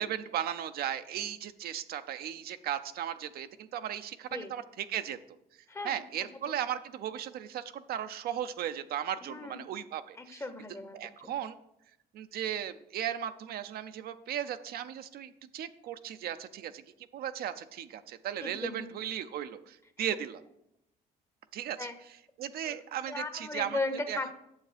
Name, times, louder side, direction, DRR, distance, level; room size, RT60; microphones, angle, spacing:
voice 1, 0.0-5.2 5.8-10.4 10.9-11.6 12.1-16.8 17.1-20.4 21.5-21.9 22.4-23.8 24.1-24.2, right 10 dB, 65° right, 10 dB, 0.6 m, -36 dB
voice 2, 5.7-6.0 9.2-9.6 10.2-11.3 18.4-18.9 20.0-20.1 21.8-21.9 22.6-22.8 23.1-24.3, left 2 dB, 15° left, 9 dB, 0.9 m, -37 dB
9.0 x 7.0 x 5.0 m, 0.80 s
cardioid pair, 110°, 17 cm